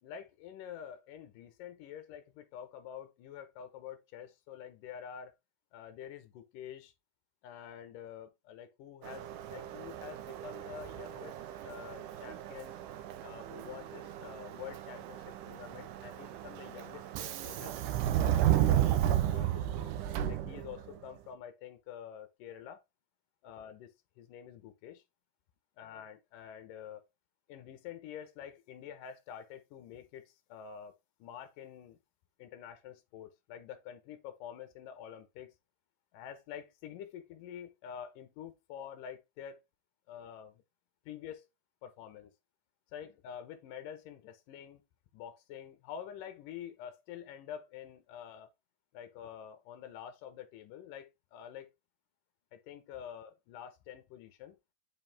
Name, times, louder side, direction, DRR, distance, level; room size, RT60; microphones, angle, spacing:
voice 1, 0.0-5.3 5.7-6.9 7.4-11.4 11.6-12.8 13.2-17.7 18.1-19.9 20.3-22.8 23.4-23.9 24.2-25.0 25.8-27.0 27.5-30.9 31.2-32.0 32.4-35.5 36.1-39.6 40.1-40.6 41.1-41.5 41.8-42.3 42.9-44.8 45.1-48.5 48.9-51.7 52.5-54.6, left 9 dB, 75° left, 2.6 m, -47 dB
Subway metro underground, 9.0-21.0, right 11 dB, 75° right, 2.2 m, -33 dB
8.5 x 4.8 x 3.5 m
omnidirectional pair, 4.0 m